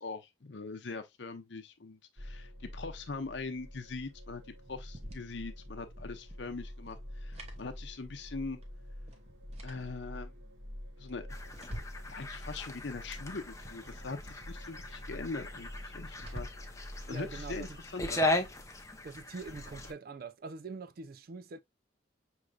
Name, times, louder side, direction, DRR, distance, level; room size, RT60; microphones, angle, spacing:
voice 1, 0.0-4.4 4.7-8.6 9.6-10.3 11.0-11.3 12.1-16.5 17.1-17.7 17.9-18.2, left 3 dB, 60° left, 0.7 m, -41 dB
sound 1, 2.2-17.7, equal, 85° right, 1.1 m, -47 dB
sound 2, 4.7-8.4 8.6-8.7 9.1-10.3 10.8-12.1 12.4-15.0 15.4-15.5 15.7-16.8 17.4-19.9, equal, 30° right, 0.8 m, -49 dB
sound 3, 11.3-19.9, left 1 dB, 15° left, 0.6 m, -38 dB
voice 2, 17.1-17.8 19.0-21.6, right 4 dB, 50° right, 0.4 m, -44 dB
6.2 x 3.2 x 2.3 m
head